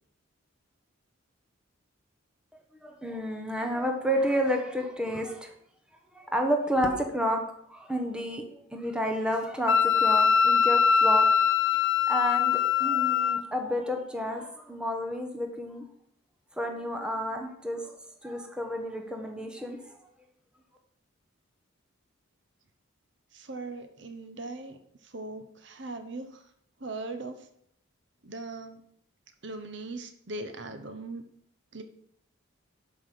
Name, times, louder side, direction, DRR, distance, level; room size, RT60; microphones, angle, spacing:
voice 1, 2.8-5.5 6.1-7.4 7.7-11.3 12.1-15.8 16.6-18.0 18.2-19.9, equal, 5° right, 3 dB, 1.2 m, -30 dB
Wind instrument woodwind instrument, 9.7-13.4, left 6 dB, 60° left, 0.6 m, -22 dB
voice 2, 23.3-26.4 26.8-27.5 28.2-28.8 29.4-31.2 31.7-31.8, right 2 dB, 55° right, 8 dB, 1.0 m, -39 dB
11.5 x 5.5 x 6.0 m, 0.70 s
head